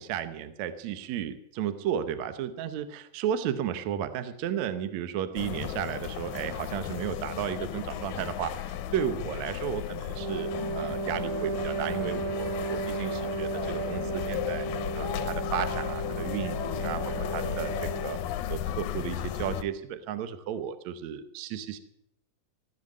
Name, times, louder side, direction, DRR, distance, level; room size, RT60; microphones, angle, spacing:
voice 1, 0.0-10.5 10.8-14.7 15.0-17.0 17.3-18.2 18.5-21.8, right 9 dB, 70° right, 10 dB, 1.8 m, -33 dB
sound 1, 5.4-19.6, left 11 dB, 80° left, 2.5 m, -35 dB
Wind instrument woodwind instrument, 10.1-18.3, right 3 dB, 90° right, 3.6 m, -34 dB
16.0 x 8.1 x 9.3 m, 0.78 s
omnidirectional pair, 4.1 m